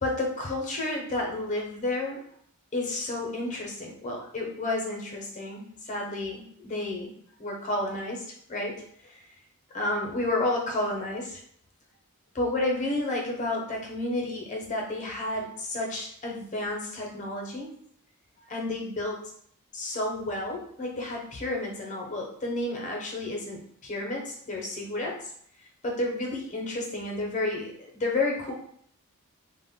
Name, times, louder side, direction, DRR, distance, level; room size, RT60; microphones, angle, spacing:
voice 1, 0.0-2.2 2.7-7.1 7.4-8.8 9.7-11.4 12.3-17.7 18.5-19.2 19.7-25.2 25.8-28.5, left 2 dB, 35° left, -1 dB, 0.6 m, -31 dB
2.1 x 2.0 x 3.5 m, 0.65 s
head